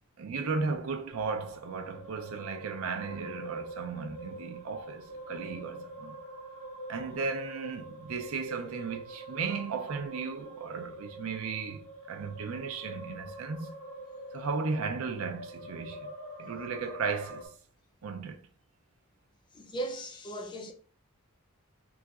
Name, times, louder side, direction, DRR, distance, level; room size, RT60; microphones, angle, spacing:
voice 1, 0.2-6.1 6.9-13.7 14.3-16.1 16.4-17.5 18.0-18.4, right 4 dB, 75° right, 0.5 m, -35 dB
sound 1, 1.1-17.5, right 1 dB, 70° left, 1.4 m, -45 dB
voice 2, 19.5-20.7, right 2 dB, 20° left, 0.4 m, -37 dB
3.9 x 2.5 x 2.3 m
head